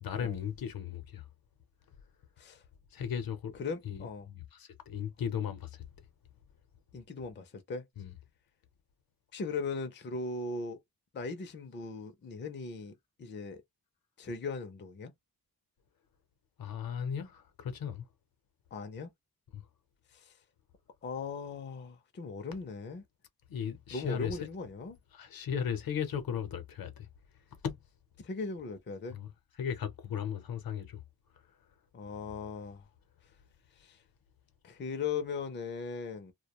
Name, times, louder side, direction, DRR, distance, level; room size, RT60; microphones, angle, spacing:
voice 1, 0.0-1.2 2.9-3.5 3.8-5.8 8.0-8.1 16.6-18.1 19.5-19.6 23.5-24.4 25.1-27.1 27.6-27.8 29.1-29.3 29.6-31.0 32.1-32.3, left 8 dB, 70° left, 0.7 m, -36 dB
voice 2, 3.6-4.3 6.9-7.8 9.3-10.8 11.1-12.9 13.2-13.6 14.2-15.1 18.7-19.1 20.1-20.3 21.0-23.0 23.9-25.0 28.2-29.2 31.9-32.8 33.8-34.0 34.6-36.3, left 4 dB, 30° left, 0.5 m, -38 dB
2.2 x 2.1 x 2.9 m
wide cardioid pair, 155°, 37 cm